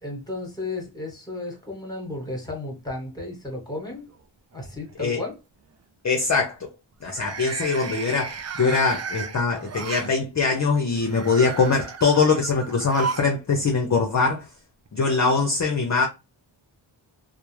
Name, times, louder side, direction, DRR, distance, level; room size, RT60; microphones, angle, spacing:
voice 1, 0.0-4.1 4.5-5.4, left 2 dB, 10° left, 1.1 m, -33 dB
sound 1, 3.5-4.1 4.5-4.9 7.0-10.1 10.9-13.4 13.6-13.7 14.9-15.0, right 5 dB, 35° right, 0.4 m, -34 dB
voice 2, 6.0-6.7 7.0-14.4 14.9-16.1, left 4 dB, 35° left, 0.5 m, -22 dB
2.2 x 2.1 x 3.0 m
cardioid pair, 50°, 49 cm